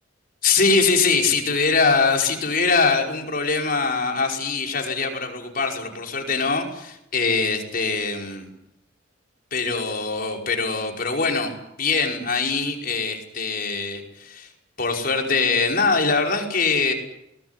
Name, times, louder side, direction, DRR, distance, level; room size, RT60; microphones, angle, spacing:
voice 1, 0.4-8.5 9.5-11.5 11.8-14.5 14.8-16.9, left 4 dB, 50° left, 2 dB, 5.3 m, -22 dB
24.0 x 20.0 x 10.0 m, 0.82 s
head